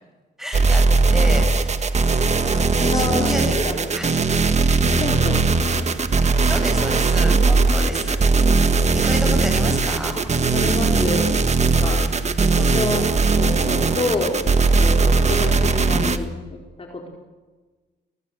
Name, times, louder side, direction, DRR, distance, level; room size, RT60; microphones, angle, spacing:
voice 1, 0.4-0.8 1.1-1.7 2.4-3.6 3.9-4.1 5.0-5.2 6.4-8.2 8.9-10.1 11.8-11.9 12.6-12.8 14.7-14.9, equal, ahead, 4 dB, 6.9 m, -30 dB
sound 1, 0.5-16.2, right 3 dB, 35° right, 1.6 m, -19 dB
voice 2, 1.0-1.5 2.8-4.0 5.0-5.9 10.1-10.2 10.5-11.3 11.6-12.0 12.5-13.0 13.4-14.4 14.8-17.1, left 3 dB, 30° left, 1 dB, 4.6 m, -28 dB
23.5 x 18.0 x 8.1 m, 1.3 s
cardioid pair, 100°, 19 cm